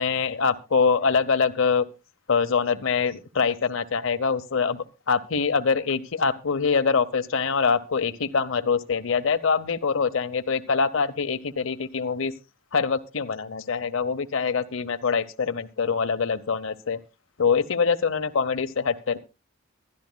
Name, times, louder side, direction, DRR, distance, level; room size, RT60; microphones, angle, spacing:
voice 1, 0.0-1.9 2.3-12.3 12.7-17.0 17.4-19.2, left 5 dB, 75° left, 11 dB, 0.8 m, -24 dB
23.0 x 11.5 x 2.2 m, 0.27 s
head